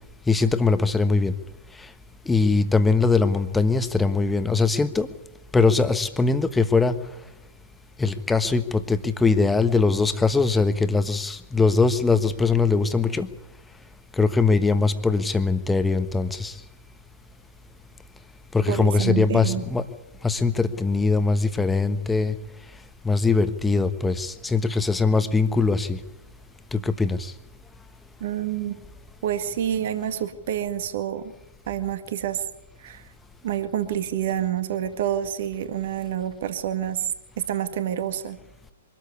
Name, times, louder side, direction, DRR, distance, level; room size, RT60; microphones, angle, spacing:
voice 1, 0.3-1.3 2.3-5.1 5.5-6.9 8.0-13.3 14.2-16.5 18.5-19.8 20.2-22.3 23.0-26.0 26.7-27.3, left 4 dB, 10° left, 10 dB, 1.3 m, -21 dB
voice 2, 18.7-19.6 28.2-28.8 29.2-31.3 31.7-32.4 32.8-33.1 33.4-37.1 37.4-38.4, right 10 dB, 55° right, 9 dB, 1.8 m, -28 dB
23.5 x 13.5 x 9.7 m, 0.96 s
figure-of-eight pair, 115°, 0 cm